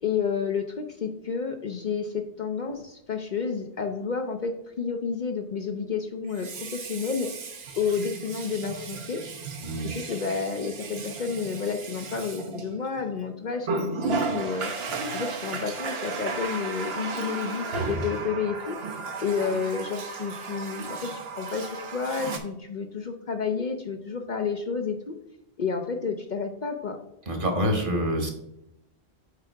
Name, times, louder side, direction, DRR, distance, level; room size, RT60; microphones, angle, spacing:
voice 1, 0.0-7.5 7.7-9.2 9.8-18.8 19.2-21.1 21.4-25.1 25.6-27.0, left 5 dB, 50° left, 5 dB, 0.7 m, -30 dB
Water tap faucet, 2.7-2.8 6.2-13.1 13.6-22.4, right 4 dB, 70° right, 1.1 m, -34 dB
voice 2, 27.3-28.3, equal, 55° right, 4 dB, 1.4 m, -26 dB
7.0 x 4.8 x 4.5 m, 0.81 s
omnidirectional pair, 1.1 m